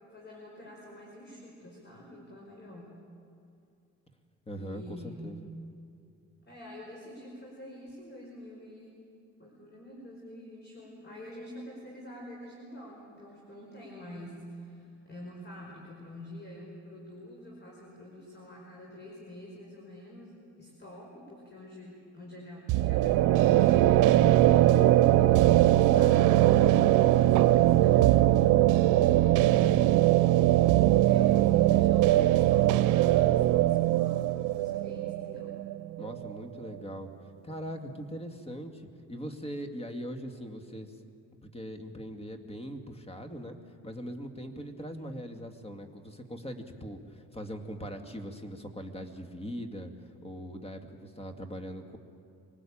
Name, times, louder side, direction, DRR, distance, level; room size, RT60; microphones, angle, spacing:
voice 1, 0.1-2.9 4.5-5.4 6.5-9.0 9.4-24.6 25.1-29.5 30.6-35.5 44.9-45.2, left 1 dB, 35° left, -2 dB, 5.5 m, -47 dB
voice 2, 4.5-5.5 36.0-37.1 37.4-40.9 41.5-43.6 43.8-49.9 50.2-52.0, equal, 20° left, 5 dB, 2.4 m, -41 dB
sound 1, 22.7-36.4, right 14 dB, 90° right, 0.6 m, -21 dB
24.5 x 20.0 x 8.8 m, 2.5 s
cardioid pair, 90°, 30 cm